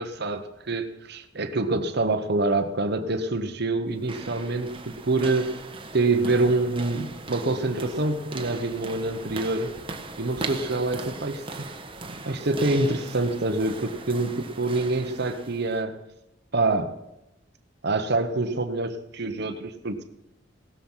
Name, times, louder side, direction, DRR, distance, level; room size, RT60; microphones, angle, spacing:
voice 1, 0.0-5.6 5.9-9.7 10.2-11.4 12.2-16.0 16.5-16.9 17.8-20.0, right 2 dB, 60° right, 7 dB, 1.2 m, -26 dB
sound 1, 3.9-15.8, right 3 dB, 30° right, 1.4 m, -39 dB
17.5 x 13.5 x 5.7 m, 0.89 s
head